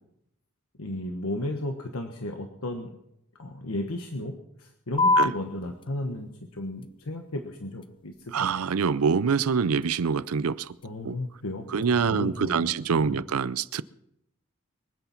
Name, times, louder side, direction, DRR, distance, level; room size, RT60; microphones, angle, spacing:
voice 1, 0.8-2.9 3.4-8.5 10.8-12.7 13.0-13.2, left 1 dB, 85° left, 1.3 m, -34 dB
sound 1, 5.0-12.0, left 2 dB, 25° left, 0.6 m, -32 dB
voice 2, 8.3-10.8 11.0-11.2 11.7-13.8, right 6 dB, 90° right, 0.5 m, -25 dB
23.5 x 8.4 x 5.8 m
head